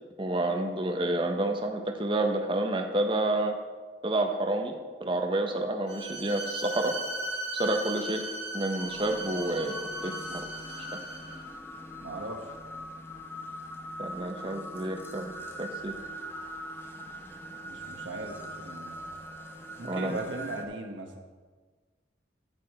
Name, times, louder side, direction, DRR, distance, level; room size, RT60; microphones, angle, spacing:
voice 1, 0.2-3.6 4.0-6.9 7.5-8.2 8.5-10.4 14.0-15.3 15.6-15.9 19.9-20.2, right 1 dB, 25° right, 4 dB, 0.7 m, -29 dB
Bowed string instrument, 5.9-11.4, right 1 dB, 60° right, 2.2 m, -37 dB
sound 1, 8.8-20.7, equal, 10° left, 0.6 m, -42 dB
voice 2, 12.0-12.6 17.6-19.0 19.8-21.1, right 2 dB, 85° right, 3 dB, 1.2 m, -38 dB
12.5 x 4.9 x 4.3 m, 1.4 s
head